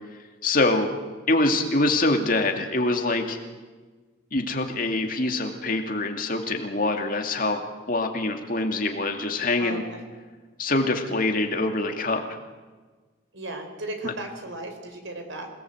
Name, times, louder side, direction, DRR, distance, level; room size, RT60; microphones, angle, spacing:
voice 1, 0.4-0.9 1.3-3.4 4.3-7.6 7.9-9.8 10.6-12.2 14.0-14.1, left 2 dB, 45° left, 4 dB, 2.6 m, -24 dB
voice 2, 9.6-10.0 13.3-15.5, right 2 dB, 65° right, 5 dB, 4.5 m, -36 dB
27.0 x 19.0 x 8.0 m, 1.3 s
head